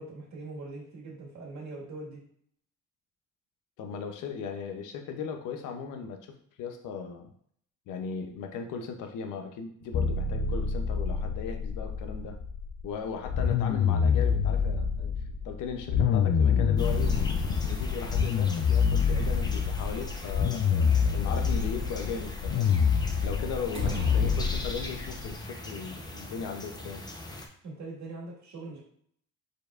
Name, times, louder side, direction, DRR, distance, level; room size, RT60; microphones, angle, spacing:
voice 1, 0.0-2.2 27.6-28.8, right 2 dB, 65° right, -2 dB, 1.8 m, -42 dB
voice 2, 3.8-7.3 7.9-12.4 12.8-15.1 15.4-22.7 23.2-27.0, left 6 dB, 85° left, 5 dB, 0.7 m, -37 dB
sound 1, 9.9-12.9 13.2-25.3, left 6 dB, 50° left, 0.4 m, -27 dB
sound 2, 16.8-27.5, left 1 dB, 15° left, 0.8 m, -41 dB
sound 3, 23.7-25.3, right 2 dB, 40° right, 1.4 m, -39 dB
4.7 x 4.6 x 2.5 m, 0.64 s
cardioid pair, 90°, 30 cm